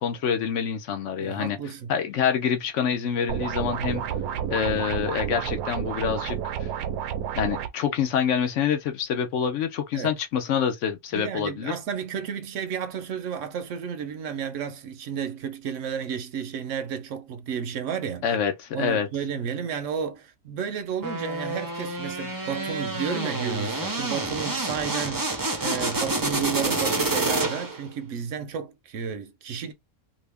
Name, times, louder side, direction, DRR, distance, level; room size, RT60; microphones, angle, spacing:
voice 1, 0.0-1.6 1.9-4.0 4.5-6.7 7.4-11.8 18.2-19.1, left 7 dB, 65° left, 0.9 m, -26 dB
voice 2, 1.2-1.9 9.9-10.1 11.1-18.2 18.7-29.7, right 7 dB, 70° right, 0.9 m, -32 dB
sound 1, 3.3-7.7, right 9 dB, 85° right, 1.1 m, -30 dB
sound 2, 21.0-27.9, right 2 dB, 30° right, 0.4 m, -28 dB
2.7 x 2.5 x 3.3 m
omnidirectional pair, 1.5 m